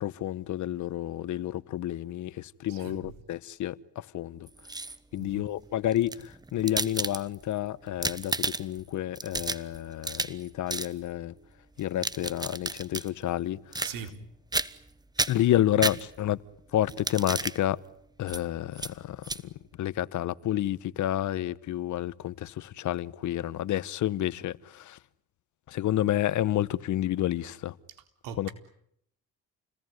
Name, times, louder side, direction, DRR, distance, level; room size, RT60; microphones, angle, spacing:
voice 1, 0.0-4.5 5.1-11.3 11.8-13.6 15.3-16.4 16.7-17.8 18.2-19.3 19.8-25.0 25.7-27.7 28.4-28.5, left 12 dB, 60° left, 1.1 m, -30 dB
voice 2, 2.7-3.0 5.2-5.5 13.8-14.2 27.9-28.0 28.2-28.5, right 7 dB, 85° right, 4.2 m, -40 dB
sound 1, 4.5-5.2 5.9-7.5 7.9-8.8 9.2-10.4 10.7-10.9 11.8-13.1 13.7-14.2 14.5-14.9 15.2-16.4 16.9-17.6 18.3-18.4 18.8-18.9 19.2-19.4, right 2 dB, 10° right, 1.1 m, -32 dB
29.5 x 20.0 x 9.6 m
cardioid pair, 85°, 33 cm